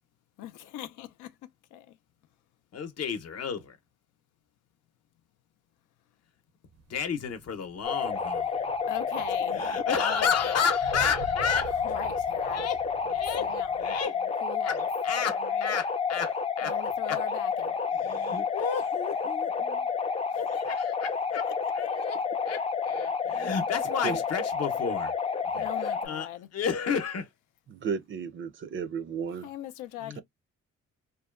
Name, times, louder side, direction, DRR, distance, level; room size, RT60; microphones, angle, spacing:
voice 1, 0.4-1.3 1.7-2.0 8.9-9.6 9.9-10.6 11.8-12.7 13.1-14.9 15.4-15.7 16.6-17.8 20.3-20.4 25.5-26.5 29.4-30.2, left 12 dB, 90° left, 0.5 m, -40 dB
voice 2, 2.7-3.8 6.9-8.6 9.5-11.8 12.5-12.8 13.1-13.5 13.8-14.2 14.6-16.8 17.1-17.2 17.9-19.9 20.3-21.5 21.7-22.2 22.5-25.1 25.5-27.3 30.0-30.2, left 6 dB, 55° left, 0.7 m, -32 dB
sound 1, 6.7-14.0, right 4 dB, 80° right, 0.7 m, -46 dB
sound 2, 7.8-26.1, left 5 dB, 20° left, 0.4 m, -30 dB
voice 3, 27.7-29.5, right 6 dB, 40° right, 0.4 m, -33 dB
2.6 x 2.2 x 2.3 m
cardioid pair, 90°, 30 cm